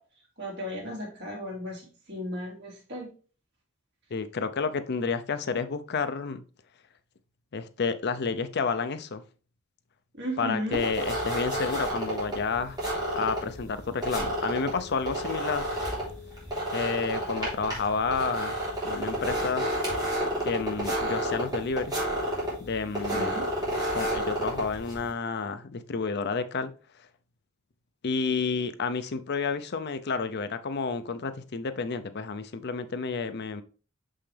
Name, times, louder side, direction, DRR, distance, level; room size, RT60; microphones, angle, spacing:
voice 1, 0.4-3.1 10.1-10.8 23.0-23.5, equal, 55° right, 3.2 m, -35 dB
voice 2, 4.1-6.4 7.5-9.2 10.4-12.8 13.1-15.7 16.7-18.6 18.8-19.6 20.4-22.0 22.6-23.3 23.9-26.7 28.0-33.6, left 5 dB, 55° left, 0.6 m, -30 dB
sound 1, 10.7-25.1, right 1 dB, 20° right, 3.7 m, -31 dB
6.9 x 5.6 x 3.3 m
head